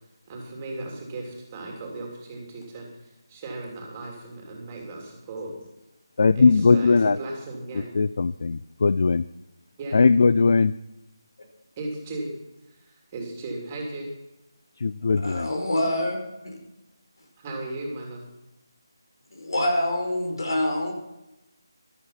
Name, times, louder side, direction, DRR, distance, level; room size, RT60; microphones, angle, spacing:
voice 1, 0.3-5.6 6.3-7.9 9.8-10.0 11.8-12.3 12.7-14.1 17.4-18.3, right 2 dB, 20° right, 0 dB, 3.2 m, -36 dB
voice 2, 6.2-7.2 7.9-9.2 9.9-10.7 14.8-15.5, left 4 dB, 55° left, 16 dB, 0.4 m, -19 dB
voice 3, 15.2-16.2 16.4-16.6 19.3-20.9, left 1 dB, 70° left, 3 dB, 4.6 m, -26 dB
14.0 x 12.5 x 5.8 m, 0.95 s
figure-of-eight pair, 165°, 2 cm